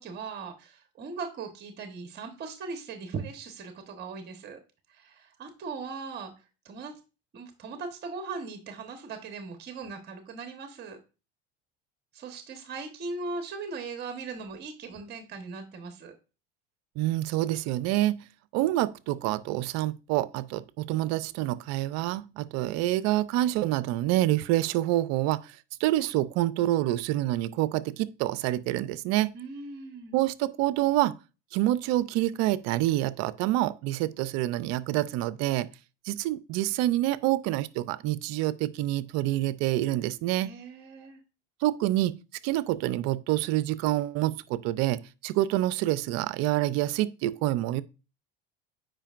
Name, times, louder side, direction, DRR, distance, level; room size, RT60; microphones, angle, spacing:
voice 1, 0.0-4.6 4.9-6.3 6.6-6.9 7.3-11.0 12.1-16.2 29.3-30.2 40.4-41.2, right 4 dB, 35° right, 1.2 m, -39 dB
voice 2, 17.0-18.2 18.5-25.5 25.8-29.3 30.1-31.2 31.5-35.7 36.1-40.5 41.6-42.2 42.4-47.8, right 15 dB, 60° right, 0.5 m, -27 dB
8.9 x 5.1 x 2.5 m
supercardioid pair, 110°, 30 cm